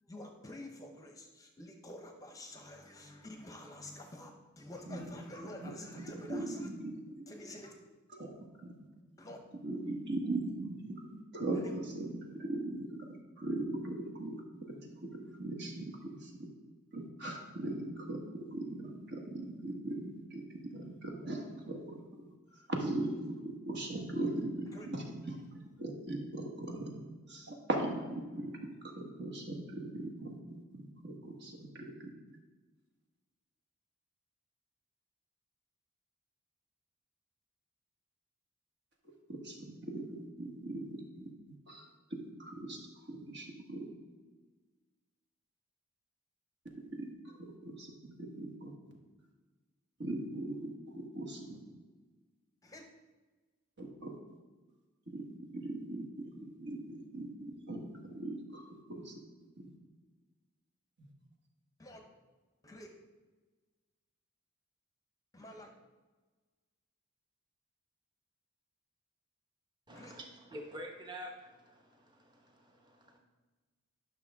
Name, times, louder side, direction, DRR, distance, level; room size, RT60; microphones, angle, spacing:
voice 1, 0.0-4.3 4.6-6.7 7.3-7.7 9.2-9.4 24.7-24.9 52.6-52.8 61.8-62.0 62.6-62.9 65.3-65.7 69.9-70.1, left 1 dB, 15° left, 3 dB, 0.8 m, -49 dB
voice 2, 4.9-7.5 8.1-8.7 9.5-14.4 14.7-16.5 16.9-27.0 27.3-30.4 30.7-32.1 39.3-41.3 41.7-43.9 46.8-48.9 50.0-50.7 51.0-51.6 53.8-54.1 55.1-59.2 59.6-59.7 61.0-61.1, right 2 dB, 55° right, 1 dB, 1.4 m, -40 dB
voice 3, 69.9-73.2, equal, 20° right, 1 dB, 1.1 m, -48 dB
11.0 x 6.1 x 3.6 m, 1.3 s
head